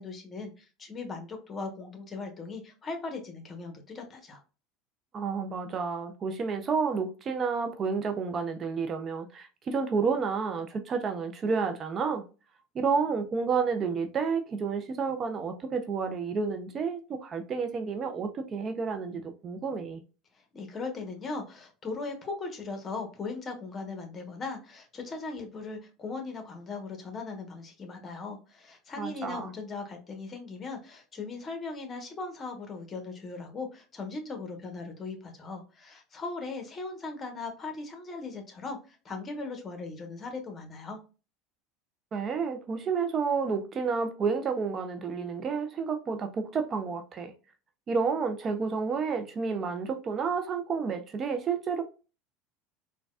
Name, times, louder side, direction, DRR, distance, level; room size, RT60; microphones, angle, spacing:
voice 1, 0.0-4.4 20.3-41.0, left 3 dB, 30° left, 1.0 m, -39 dB
voice 2, 5.1-12.2 12.7-20.0 29.0-29.5 42.1-47.3 47.9-51.8, right 5 dB, 35° right, 0.4 m, -30 dB
4.0 x 2.2 x 2.3 m
hypercardioid pair, 90°, 0 cm